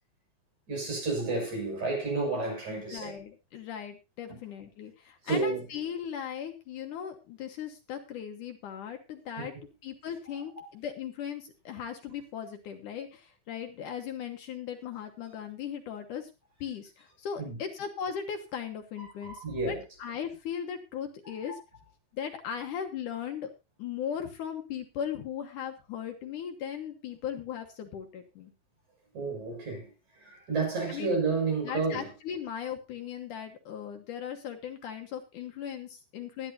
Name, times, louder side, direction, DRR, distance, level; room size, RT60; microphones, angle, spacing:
voice 1, 0.7-3.1 4.3-4.4 5.2-5.6 9.4-9.5 10.4-10.5 17.4-17.6 19.0-19.8 21.2-21.6 29.1-29.9 30.1-32.1, right 3 dB, 55° right, 7.7 m, -31 dB
voice 2, 2.7-9.5 9.8-16.3 16.6-21.6 22.1-23.5 23.8-28.5 30.9-31.1 31.6-36.5, left 8 dB, 65° left, 2.5 m, -38 dB
19.5 x 10.5 x 2.7 m
omnidirectional pair, 4.2 m